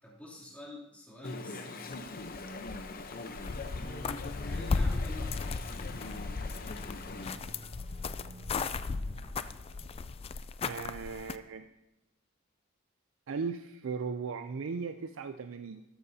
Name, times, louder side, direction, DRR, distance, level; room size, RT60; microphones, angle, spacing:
voice 1, 0.0-2.1 3.7-6.1, left 1 dB, 10° left, -7 dB, 2.9 m, -48 dB
Chatter / Stream, 1.2-7.4, left 3 dB, 45° left, 0.8 m, -42 dB
sound 1, 1.9-3.1 3.3-11.4, left 4 dB, 30° left, 0.3 m, -36 dB
sound 2, 4.9-10.5, equal, 30° right, 3.2 m, -53 dB
voice 2, 10.6-11.7 13.3-15.8, right 5 dB, 70° right, 9 dB, 0.4 m, -37 dB
12.5 x 12.5 x 2.8 m, 0.94 s
head